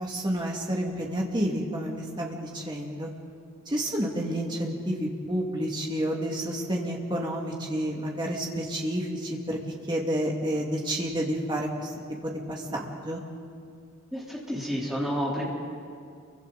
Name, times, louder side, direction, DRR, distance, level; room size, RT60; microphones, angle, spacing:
voice 1, 0.0-3.1 3.7-9.6 9.9-11.9 12.2-13.2, equal, 20° right, -1 dB, 2.5 m, -30 dB
voice 2, 14.1-15.5, equal, ahead, -6 dB, 4.1 m, -30 dB
29.5 x 24.0 x 4.2 m, 2.3 s
head